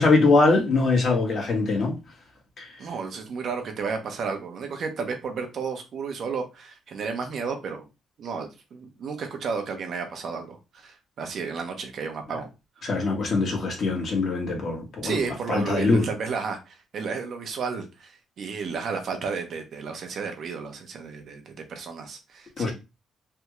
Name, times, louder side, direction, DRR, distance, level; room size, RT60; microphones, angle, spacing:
voice 1, 0.0-1.9 2.6-2.7 12.8-15.2 15.5-16.0 22.6-22.7, left 3 dB, 55° left, 1.3 m, -22 dB
voice 2, 2.8-7.9 8.2-12.5 12.8-12.9 15.0-22.7, right 5 dB, 60° right, 0.8 m, -32 dB
3.4 x 2.4 x 3.0 m
cardioid pair, 90°, 0 cm